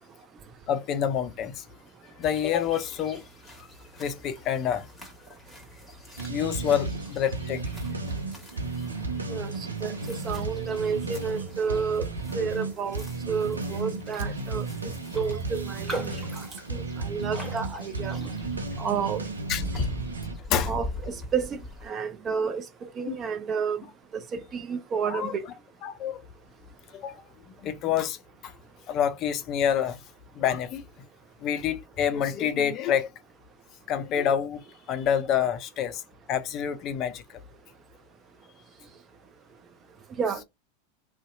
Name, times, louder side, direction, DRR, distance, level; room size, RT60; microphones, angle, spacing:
voice 1, 0.7-1.6 2.2-3.2 4.0-4.9 6.3-7.6 19.5-19.9 20.5-20.7 23.1-23.2 25.1-25.3 25.8-26.2 26.9-27.2 27.6-28.2 28.4-28.5 28.9-30.0 30.4-30.8 31.4-33.1 33.9-34.6 34.9-36.0 36.3-37.2, left 9 dB, 40° left, 0.4 m, -27 dB
sound 1, 2.2-21.9, left 1 dB, 5° left, 1.3 m, -43 dB
sound 2, 6.2-20.3, right 3 dB, 85° right, 0.5 m, -34 dB
voice 2, 9.8-12.1 12.3-14.7 15.1-16.2 16.7-18.2 18.8-19.2 20.6-20.9 21.3-21.5 21.9-22.6 23.0-23.8 24.1-25.4 40.2-40.4, right 6 dB, 30° right, 0.6 m, -30 dB
Raindrop, 14.0-14.4 14.6-14.7 15.1-18.7 19.1-19.4, right 1 dB, 10° right, 1.1 m, -39 dB
2.6 x 2.1 x 2.5 m
hypercardioid pair, 90°, 0 cm